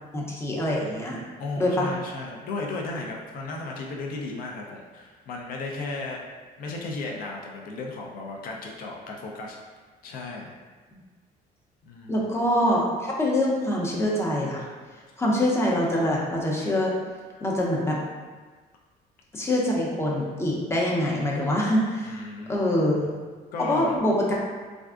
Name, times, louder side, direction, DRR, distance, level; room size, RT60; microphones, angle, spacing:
voice 1, 0.1-1.2 1.6-1.9 12.1-14.6 15.2-16.9 17.4-18.0 19.3-22.2 22.5-23.1 23.6-24.2, left 1 dB, 15° left, -3 dB, 0.6 m, -24 dB
voice 2, 1.4-6.2 6.6-9.6 10.0-10.6 11.8-12.4 22.0-22.6 23.5-24.0, left 3 dB, 60° left, -1 dB, 0.5 m, -35 dB
3.4 x 2.4 x 2.4 m, 1.4 s
cardioid pair, 110°, 17 cm